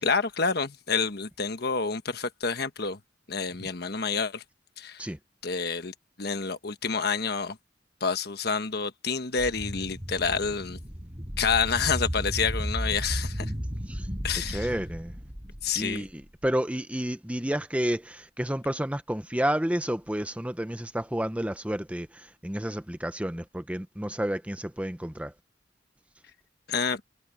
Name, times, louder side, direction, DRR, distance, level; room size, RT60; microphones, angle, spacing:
voice 1, 0.0-3.0 3.3-4.4 4.8-5.1 5.4-7.6 8.0-10.8 11.4-13.5 14.2-14.7 15.6-16.1 26.7-27.0, left 5 dB, 55° left, 1.3 m, -28 dB
sound 1, 9.4-16.5, equal, 20° right, 6.2 m, -34 dB
voice 2, 14.5-15.1 15.8-25.3, equal, 5° right, 0.8 m, -30 dB
head